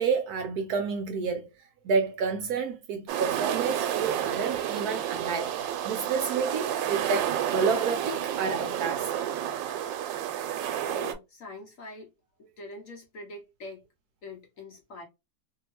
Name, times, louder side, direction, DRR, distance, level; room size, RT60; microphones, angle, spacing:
voice 1, 0.0-1.5 1.8-5.6 5.8-9.2, right 5 dB, 70° right, 0.9 m, -29 dB
sound 1, 3.1-11.1, right 10 dB, 90° right, 1.3 m, -30 dB
voice 2, 10.8-12.1 12.6-13.8 14.2-15.0, left 2 dB, 60° left, 0.9 m, -44 dB
2.7 x 2.7 x 2.9 m
omnidirectional pair, 2.0 m